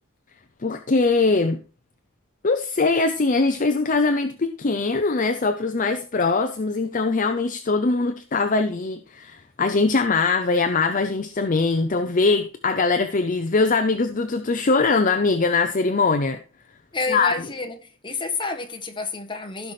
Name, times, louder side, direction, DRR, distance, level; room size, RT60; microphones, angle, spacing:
voice 1, 0.6-1.6 2.4-16.4 17.1-17.3, left 3 dB, 35° left, 0.6 m, -22 dB
voice 2, 16.9-19.7, left 3 dB, 20° left, 1.3 m, -30 dB
15.5 x 5.8 x 3.2 m
head